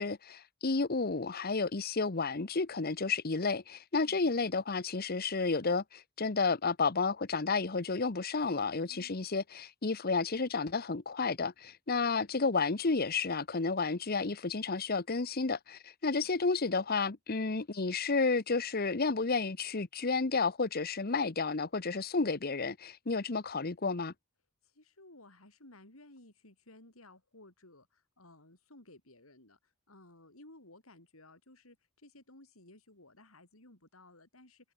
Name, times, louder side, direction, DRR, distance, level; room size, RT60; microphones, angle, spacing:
voice 1, 0.0-24.1, left 4 dB, 45° left, 1.0 m, -31 dB
voice 2, 4.0-4.3 8.8-9.3 12.0-12.4 16.1-16.3 24.6-34.7, left 2 dB, 85° left, 6.5 m, -57 dB
head